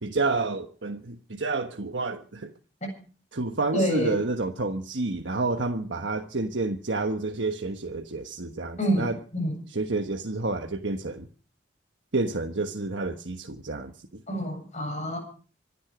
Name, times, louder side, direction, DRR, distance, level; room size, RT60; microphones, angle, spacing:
voice 1, 0.0-2.5 3.3-9.2 9.7-11.3 12.1-14.2, right 3 dB, 80° right, 1.3 m, -29 dB
voice 2, 3.7-4.2 8.8-9.6 14.3-15.2, equal, 40° left, 7.6 m, -27 dB
26.0 x 10.0 x 5.0 m
head